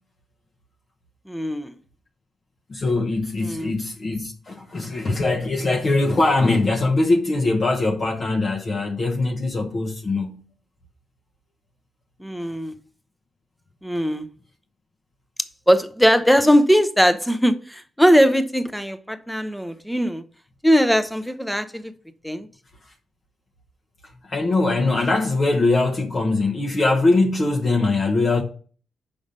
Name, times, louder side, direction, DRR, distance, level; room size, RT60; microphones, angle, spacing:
voice 1, 1.3-1.8 3.4-3.7 12.2-12.7 13.8-14.3 15.7-20.2 20.6-21.9 22.2-22.5, equal, ahead, 0.7 m, -20 dB
voice 2, 2.7-10.4 24.2-28.4, left 2 dB, 40° left, 1.0 m, -21 dB
5.8 x 5.3 x 5.3 m
cardioid pair, 100°, 0 cm